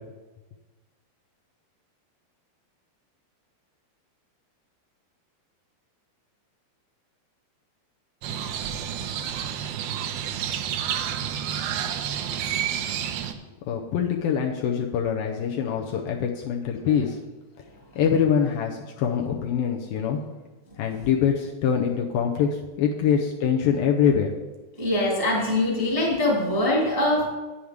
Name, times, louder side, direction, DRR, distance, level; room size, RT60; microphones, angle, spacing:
Crow, 8.2-13.3, right 9 dB, 80° right, 2.5 m, -29 dB
voice 1, 13.6-17.2 18.0-20.2 20.8-24.3, left 7 dB, 80° left, 1 dB, 2.2 m, -24 dB
voice 2, 24.7-27.2, left 1 dB, 15° right, -4 dB, 1.3 m, -23 dB
9.3 x 7.1 x 5.0 m, 1.2 s
omnidirectional pair, 4.6 m